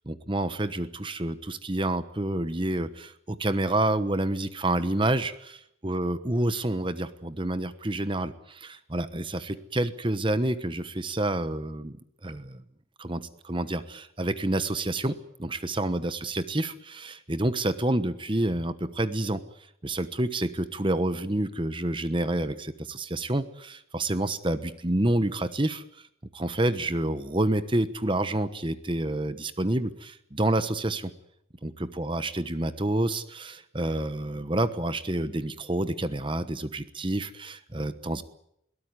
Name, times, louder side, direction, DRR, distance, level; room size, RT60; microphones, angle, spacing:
voice 1, 0.1-12.0 12.2-12.6 13.0-19.4 19.8-26.0 26.3-31.1 31.6-38.2, right 1 dB, 25° right, 12 dB, 1.1 m, -28 dB
22.0 x 18.0 x 9.7 m, 0.76 s
head